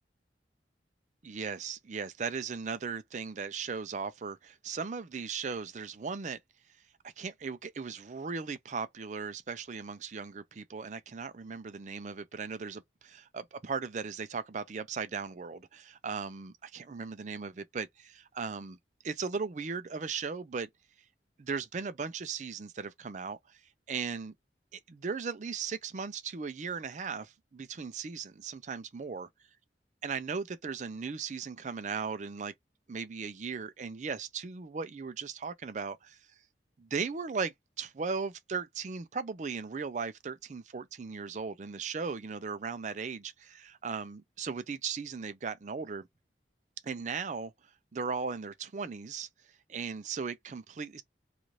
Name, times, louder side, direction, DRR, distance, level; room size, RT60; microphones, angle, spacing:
voice 1, 1.2-6.4 7.0-18.8 19.0-20.7 21.4-23.6 23.9-24.3 24.7-29.3 30.0-32.5 32.9-36.2 36.8-46.1 46.8-47.5 47.9-49.3 49.7-51.0, right 5 dB, 40° right, 0.4 m, -37 dB
2.6 x 2.4 x 3.1 m
head